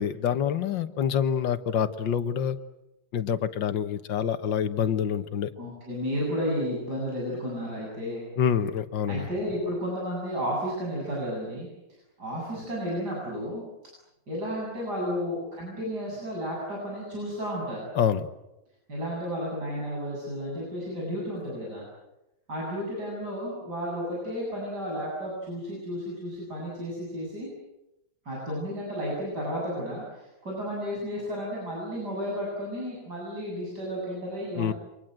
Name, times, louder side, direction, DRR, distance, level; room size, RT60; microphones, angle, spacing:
voice 1, 0.0-2.6 3.1-5.5 8.4-9.3 18.0-18.3 34.6-34.7, left 8 dB, 85° left, 11 dB, 1.9 m, -26 dB
voice 2, 5.6-8.2 9.1-11.7 12.2-13.6 14.3-17.9 18.9-21.9 22.5-27.5 28.3-34.8, equal, 60° right, -3 dB, 8.6 m, -32 dB
29.5 x 25.5 x 7.8 m, 0.91 s
omnidirectional pair, 2.0 m